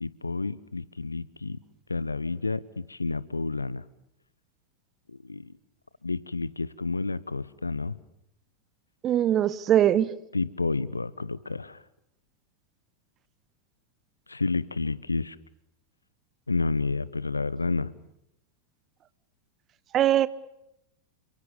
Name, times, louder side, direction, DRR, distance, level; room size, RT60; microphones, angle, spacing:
voice 1, 0.0-1.6 1.9-3.9 5.1-5.5 6.0-8.0 10.3-11.8 14.3-15.4 16.5-17.9, left 3 dB, 80° left, 20 dB, 1.0 m, -30 dB
voice 2, 9.0-10.1 19.9-20.3, right 11 dB, 30° right, 19 dB, 1.1 m, -21 dB
29.0 x 25.5 x 7.1 m, 0.80 s
figure-of-eight pair, 90°, 0 cm